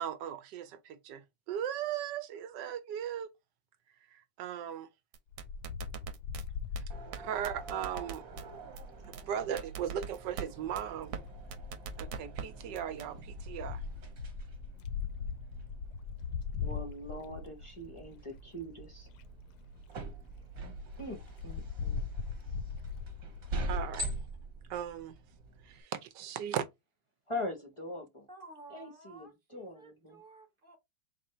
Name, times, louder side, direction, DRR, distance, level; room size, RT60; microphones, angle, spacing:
voice 1, 0.0-3.3 4.1-4.9 7.1-8.2 9.1-11.1 12.0-13.8 23.7-24.1 24.7-25.2 25.6-26.7, right 9 dB, 75° right, 1.2 m, -37 dB
sound 1, 5.1-6.4 6.8-6.9 7.1-7.2 7.4-8.4 8.8-8.9 9.1-9.2 9.6-10.5 10.8-10.9 11.1-11.2 11.5-12.4 12.8-13.1, right 7 dB, 90° right, 1.5 m, -40 dB
Wind, 5.3-9.0 10.1-10.5 11.2-18.2 18.8-18.9 19.1-19.2 19.6-19.7 20.0-20.1 20.3-20.4 20.9-24.2, left 6 dB, 70° left, 1.0 m, -40 dB
sound 2, 6.9-25.8, right 2 dB, 55° right, 1.3 m, -45 dB
voice 2, 16.6-19.1 21.0-22.0 27.3-28.3 28.7-29.3 29.5-30.2, left 2 dB, 35° left, 0.4 m, -42 dB
voice 3, 28.3-30.8, right 3 dB, 35° right, 1.0 m, -53 dB
4.1 x 2.6 x 4.2 m
omnidirectional pair, 2.1 m